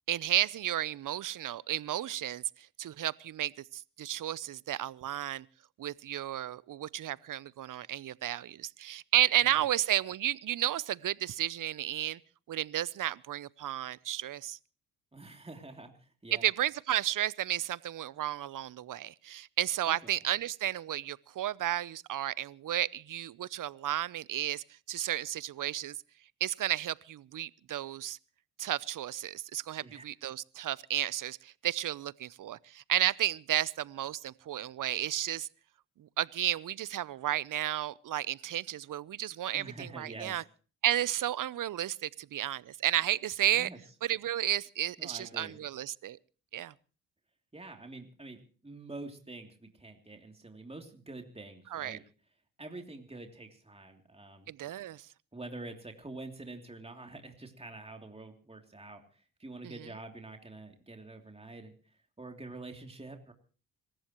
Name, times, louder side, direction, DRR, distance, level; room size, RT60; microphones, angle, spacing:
voice 1, 0.1-2.4 2.8-5.4 5.8-12.2 12.5-14.6 16.4-26.0 26.4-28.2 28.6-35.5 36.0-40.4 40.8-43.7 44.0-46.2 46.5-46.7 51.7-52.0 54.5-55.0, right 12 dB, 50° right, 0.8 m, -32 dB
voice 2, 15.1-16.5 19.9-20.2 29.8-30.0 39.5-40.4 43.5-43.8 45.0-45.6 47.5-52.0 52.6-54.5 55.3-63.3, right 2 dB, 15° right, 3.0 m, -47 dB
26.5 x 14.5 x 3.0 m
hypercardioid pair, 50°, 39 cm